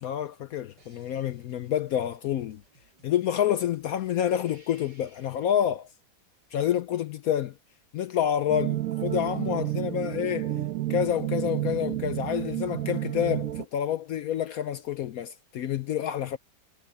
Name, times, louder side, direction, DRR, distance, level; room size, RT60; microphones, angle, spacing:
voice 1, 0.0-2.6 3.0-5.9 6.5-7.5 7.9-10.5 10.9-16.4, left 10 dB, 70° left, 1.0 m, -28 dB
sound 1, 0.8-5.6 8.4-9.5, right 1 dB, 85° right, 8.4 m, -61 dB
sound 2, 8.5-13.6, right 14 dB, 60° right, 1.1 m, -30 dB
omnidirectional pair, 1.8 m